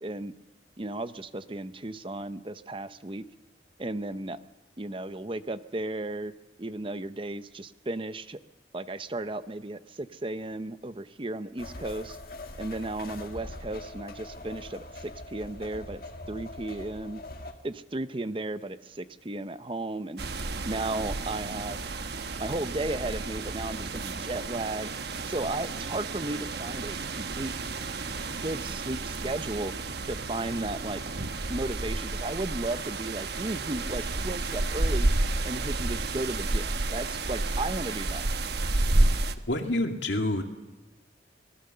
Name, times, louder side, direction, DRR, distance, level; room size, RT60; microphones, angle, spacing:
voice 1, 0.0-0.3 0.8-3.2 3.8-4.4 4.8-6.3 6.6-8.4 8.7-12.2 12.5-16.0 16.3-17.2 17.6-20.2 20.6-21.8 22.4-24.9 25.3-27.6 28.4-29.7 30.1-31.0 31.5-35.1 35.4-38.2, right 2 dB, 30° right, 12 dB, 0.7 m, -34 dB
sound 1, 11.6-17.5, left 2 dB, 50° left, 1.9 m, -42 dB
Wind Through Trees ambience, 20.2-39.4, right 2 dB, 60° right, 1.1 m, -31 dB
voice 2, 39.5-40.4, left 1 dB, 75° left, 4 dB, 2.4 m, -27 dB
25.0 x 20.0 x 6.8 m, 1.1 s
head